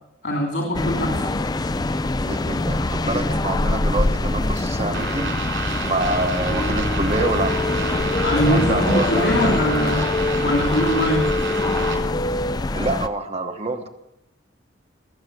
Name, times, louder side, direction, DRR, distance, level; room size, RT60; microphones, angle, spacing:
voice 1, 0.2-1.3 8.2-10.1 10.4-11.3, equal, 60° left, -1 dB, 2.9 m, -22 dB
sound 1, 0.7-13.1, left 2 dB, 20° left, 0.4 m, -24 dB
voice 2, 2.2-5.4 5.8-7.7 8.5-9.5 12.7-13.9, right 2 dB, 30° right, 5 dB, 1.1 m, -26 dB
sound 2, 4.9-11.9, right 3 dB, 70° right, 3.7 m, -30 dB
sound 3, 6.5-12.6, left 2 dB, 40° left, 1.0 m, -27 dB
20.5 x 7.6 x 7.8 m, 0.87 s
head